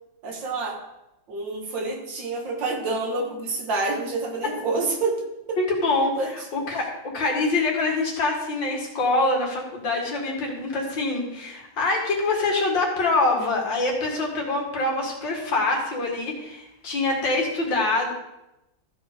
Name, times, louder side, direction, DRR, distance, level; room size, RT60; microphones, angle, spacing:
voice 1, 0.2-0.8 1.3-5.6 6.2-6.3 6.7-6.8, right 3 dB, 80° right, 1 dB, 2.2 m, -28 dB
voice 2, 5.6-6.9 7.1-18.1, left 2 dB, 75° left, 0 dB, 2.6 m, -25 dB
14.0 x 4.8 x 5.0 m, 0.94 s
omnidirectional pair, 2.0 m